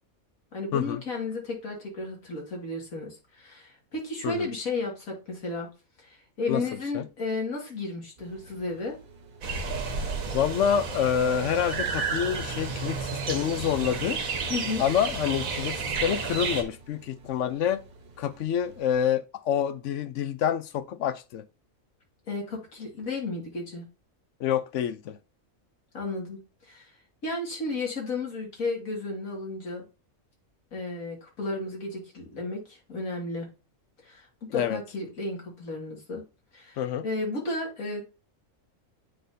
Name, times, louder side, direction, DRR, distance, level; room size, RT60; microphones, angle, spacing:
voice 1, 0.5-5.7 6.0-9.0 14.5-14.8 22.3-23.9 25.9-26.9 27.2-29.8 30.7-33.5 34.0-36.2 36.5-38.0, left 3 dB, 85° left, 2.5 m, -33 dB
sound 1, 8.2-19.0, right 2 dB, 40° right, 0.8 m, -52 dB
sound 2, 9.4-16.6, right 4 dB, 80° right, 1.5 m, -31 dB
voice 2, 10.3-14.2 14.8-17.8 18.2-21.4 24.4-25.2 34.5-34.8 36.8-37.0, left 9 dB, 70° left, 0.9 m, -27 dB
9.2 x 3.9 x 2.6 m
omnidirectional pair, 1.4 m